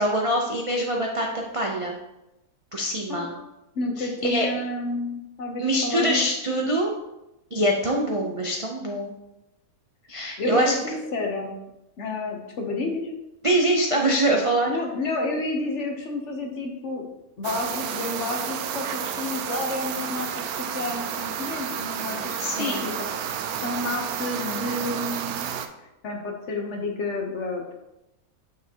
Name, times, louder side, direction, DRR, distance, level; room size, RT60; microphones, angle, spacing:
voice 1, 0.0-2.0 2.7-3.3 4.0-4.5 5.6-6.9 7.5-9.1 10.1-10.7 13.4-14.7 22.4-22.8, right 1 dB, 45° right, 0 dB, 0.4 m, -24 dB
voice 2, 3.7-6.2 10.4-11.5 12.0-13.1 14.7-17.0 17.4-22.9 23.6-25.5 26.0-27.7, left 2 dB, 55° left, 2 dB, 1.2 m, -30 dB
sound 1, 17.4-25.7, right 8 dB, 75° right, 1.0 m, -31 dB
7.1 x 6.1 x 2.9 m, 0.92 s
omnidirectional pair, 1.6 m